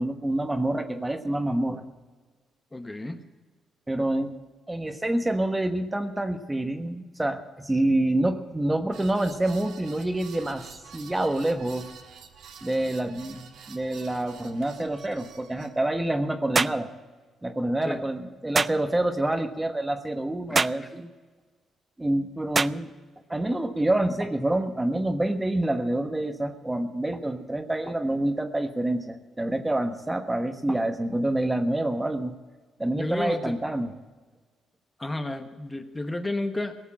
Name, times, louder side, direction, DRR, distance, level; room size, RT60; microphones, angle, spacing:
voice 1, 0.0-1.8 3.9-4.3 4.7-10.6 10.9-11.9 12.6-16.9 17.4-21.1 22.0-22.9 23.3-32.3 32.8-33.9, right 1 dB, 15° right, 8 dB, 1.2 m, -27 dB
voice 2, 2.7-3.2 17.8-18.0 20.5-20.9 32.9-33.6 35.0-36.7, left 2 dB, 15° left, 7 dB, 1.1 m, -32 dB
sound 1, 8.9-15.7, right 7 dB, 80° right, 1.5 m, -48 dB
sound 2, 16.5-16.8 18.5-18.8 20.5-20.8 22.5-22.8, right 4 dB, 30° right, 0.3 m, -24 dB
18.0 x 7.0 x 8.7 m, 1.4 s
cardioid pair, 90°, 0 cm